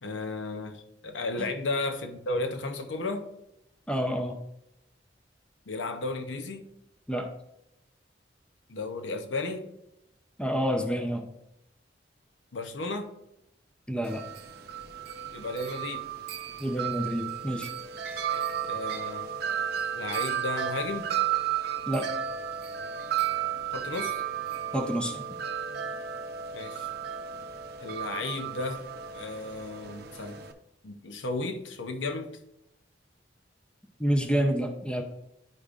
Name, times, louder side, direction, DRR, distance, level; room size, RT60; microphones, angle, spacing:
voice 1, 0.0-3.3 5.7-6.7 8.7-9.7 12.5-13.1 15.3-16.1 18.3-19.3 19.9-21.1 23.7-24.2 26.5-26.9 27.8-28.9 29.1-30.5 30.8-32.4, left 2 dB, 80° left, 0.7 m, -34 dB
voice 2, 3.9-4.4 7.1-7.3 10.4-11.3 13.9-14.3 16.6-17.7 21.9-22.1 24.7-25.3 34.0-35.0, equal, 5° left, 0.6 m, -28 dB
Wind chime, 14.0-30.5, right 9 dB, 60° right, 0.6 m, -33 dB
10.5 x 5.0 x 2.4 m
head